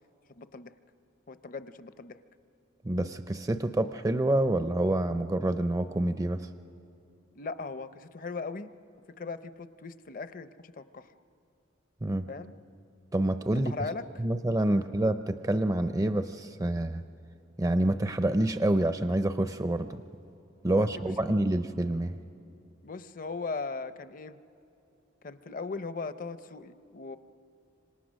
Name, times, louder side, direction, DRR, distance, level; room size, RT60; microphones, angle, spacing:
voice 1, 0.3-0.7 1.3-2.2 7.4-8.7 9.2-11.1 12.3-12.5 13.5-14.2 20.7-20.9 21.3-21.4 22.8-24.4 25.2-27.2, left 4 dB, 45° left, 12 dB, 0.6 m, -38 dB
voice 2, 2.8-6.5 12.0-12.3 13.1-13.9 14.2-17.0 17.6-20.0 20.6-22.1, right 1 dB, 15° right, 10 dB, 0.5 m, -27 dB
27.0 x 25.5 x 6.3 m, 2.7 s
head